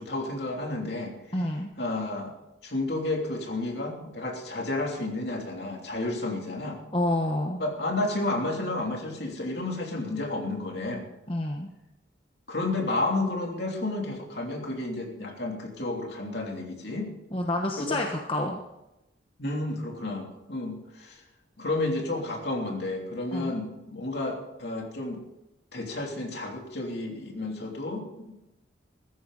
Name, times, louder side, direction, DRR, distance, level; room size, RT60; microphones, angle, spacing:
voice 1, 0.0-1.1 1.8-2.3 2.6-6.8 7.6-11.1 12.5-17.1 17.8-18.0 19.4-21.2 21.6-25.2 25.7-28.3, left 2 dB, 55° left, 1 dB, 3.1 m, -31 dB
voice 2, 1.3-1.7 6.9-7.6 11.3-11.7 17.3-18.6 23.3-23.5, left 1 dB, 30° left, 2 dB, 1.1 m, -28 dB
16.0 x 14.0 x 4.0 m, 0.93 s
head